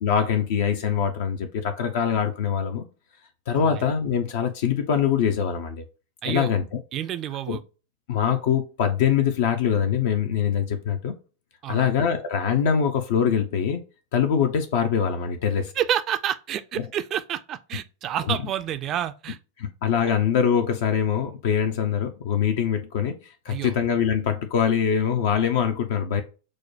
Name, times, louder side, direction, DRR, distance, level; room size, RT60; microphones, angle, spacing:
voice 1, 0.0-2.8 3.5-5.8 6.3-6.7 7.5-7.6 8.1-11.1 11.7-13.8 14.1-15.7 18.3-18.4 19.6-23.1 23.4-26.2, left 8 dB, 55° left, 0.5 m, -23 dB
voice 2, 3.5-3.9 6.2-6.5 6.9-7.6 11.6-11.9 15.7-19.4 20.0-20.1 23.5-23.7, right 10 dB, 35° right, 0.4 m, -29 dB
6.2 x 2.1 x 2.7 m
figure-of-eight pair, 90°, 0 cm